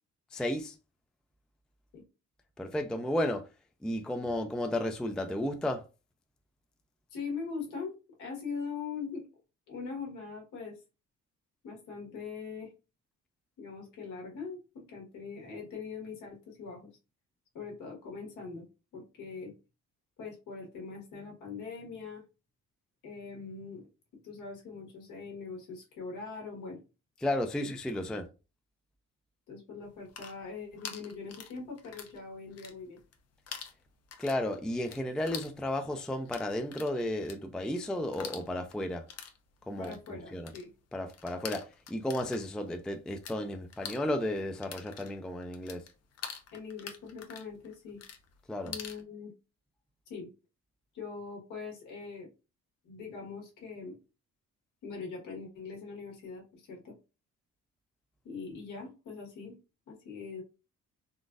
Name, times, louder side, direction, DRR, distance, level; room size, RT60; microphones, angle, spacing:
voice 1, 0.3-0.7 2.6-3.4 3.8-5.8 27.2-28.3 34.2-39.0 39.7-40.5 40.9-45.8 48.5-48.7, left 1 dB, 5° left, 0.3 m, -33 dB
voice 2, 7.1-9.2 9.7-10.8 11.6-12.7 13.6-16.9 17.5-18.7 18.9-19.5 20.2-22.2 23.0-23.9 24.2-26.8 27.6-27.7 29.5-33.0 39.8-40.7 46.5-48.0 48.6-49.3 50.1-50.3 50.9-52.3 52.8-54.0 54.8-56.9 58.2-59.6 59.9-60.4, left 5 dB, 85° left, 1.5 m, -42 dB
sound 1, 29.9-32.2 32.5-33.2 33.5-43.4 43.7-49.0, left 7 dB, 55° left, 0.7 m, -45 dB
3.9 x 2.4 x 2.5 m
cardioid pair, 90°, 30 cm